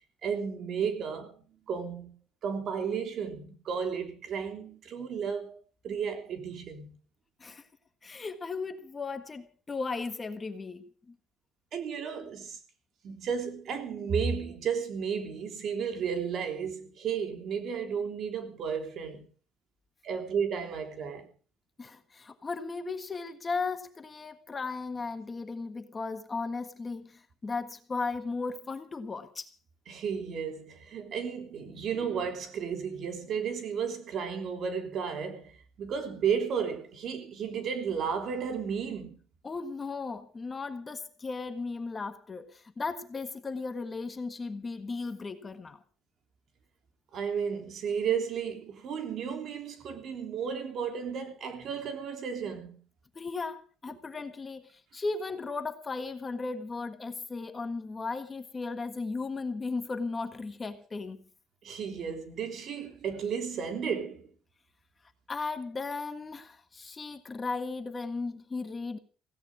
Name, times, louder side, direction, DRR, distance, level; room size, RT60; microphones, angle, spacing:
voice 1, 0.2-1.3 1.7-2.1 2.4-5.6 5.8-7.0 11.7-12.6 13.0-19.2 20.0-21.3 29.9-39.2 47.1-52.8 61.6-64.3, right 6 dB, 55° right, 3.3 m, -33 dB
voice 2, 8.0-11.1 21.8-29.5 39.4-45.8 53.1-61.2 65.3-69.0, left 4 dB, 25° left, 1.6 m, -36 dB
17.0 x 16.5 x 4.9 m
cardioid pair, 140°, 0 cm